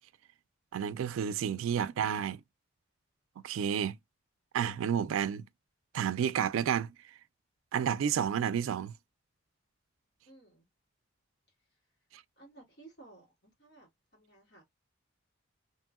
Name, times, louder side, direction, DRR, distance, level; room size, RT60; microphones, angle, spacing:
voice 1, 0.7-2.4 3.4-4.0 4.5-5.4 5.9-6.9 7.7-8.9, right 8 dB, 80° right, 0.3 m, -30 dB
voice 2, 10.3-10.7 12.4-14.6, right 2 dB, 55° left, 1.7 m, -57 dB
2.9 x 2.7 x 2.3 m
head